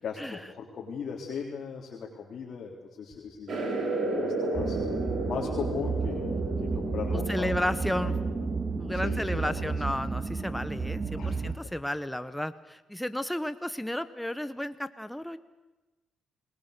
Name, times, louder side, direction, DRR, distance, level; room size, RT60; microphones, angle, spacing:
voice 1, 0.0-4.8 5.3-6.3 6.6-7.6 8.0-8.2 8.9-9.7 11.2-11.7, left 6 dB, 60° left, -2 dB, 3.6 m, -38 dB
sound 1, 3.5-9.6, right 2 dB, 55° right, 5.6 m, -34 dB
sound 2, 4.5-11.5, right 4 dB, 30° right, 1.5 m, -32 dB
voice 2, 7.3-8.2 8.8-15.4, left 1 dB, 5° left, 12 dB, 0.9 m, -33 dB
29.5 x 20.0 x 6.8 m, 1.1 s
cardioid pair, 90°, 0 cm